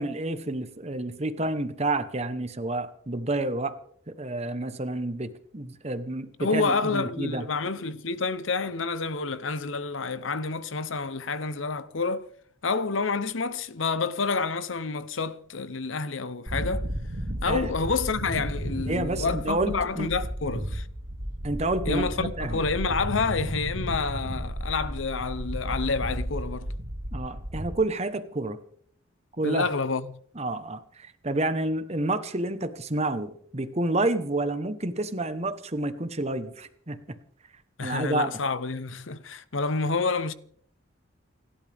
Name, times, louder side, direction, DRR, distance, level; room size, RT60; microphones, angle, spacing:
voice 1, 0.0-3.8 4.1-7.5 17.5-17.7 18.7-20.1 21.4-22.6 27.1-28.6 29.4-29.7 30.3-37.0 37.8-38.3, right 2 dB, 35° right, 1.1 m, -29 dB
voice 2, 6.4-12.3 12.6-16.9 17.4-20.9 21.9-26.7 29.4-30.2 37.8-40.3, left 4 dB, 75° left, 0.8 m, -28 dB
sound 1, 16.5-27.7, equal, 80° right, 2.5 m, -33 dB
29.5 x 11.5 x 3.5 m
head